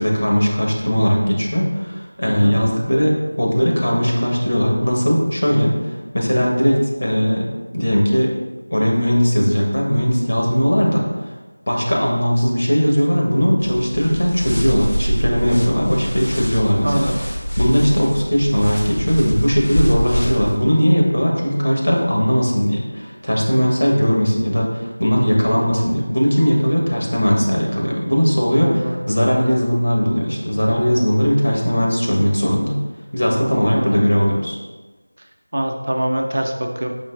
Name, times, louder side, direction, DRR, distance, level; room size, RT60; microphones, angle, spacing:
voice 1, 0.0-7.5 7.7-8.3 8.7-11.1 11.7-17.1 17.6-32.7 33.1-34.6, equal, 90° left, -2 dB, 1.0 m, -18 dB
sound 1, 13.6-20.6, equal, 70° left, 0.6 m, -25 dB
voice 2, 16.8-17.2 28.6-29.0 33.7-34.1 35.5-36.9, right 1 dB, 55° right, 3 dB, 0.4 m, -23 dB
4.4 x 3.1 x 2.4 m, 1.2 s
figure-of-eight pair, 175°, 0 cm